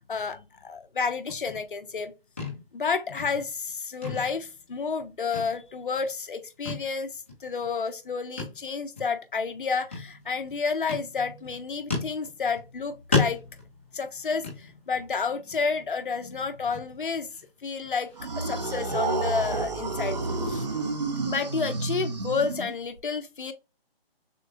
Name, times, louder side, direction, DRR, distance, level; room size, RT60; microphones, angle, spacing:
voice 1, 0.0-2.1 2.7-13.4 13.9-17.3 17.6-18.1 18.4-20.2 20.5-20.7 21.2-23.5, left 5 dB, 55° left, 0.8 m, -30 dB
sound 1, 1.3-2.1 2.4-2.8 3.1-3.7 4.0-5.0 5.3-6.0 6.6-6.9 7.3-7.4 8.4-8.7 9.0-9.1 9.9-10.5 10.9-11.5 11.9-12.8 13.1-15.1 15.5-15.8 16.1-16.2 16.7-17.4 17.8-20.3, left 4 dB, 15° left, 0.7 m, -34 dB
sound 2, 18.2-23.0, right 3 dB, 45° right, 0.8 m, -30 dB
6.5 x 2.2 x 2.7 m
hypercardioid pair, 175°, 30 cm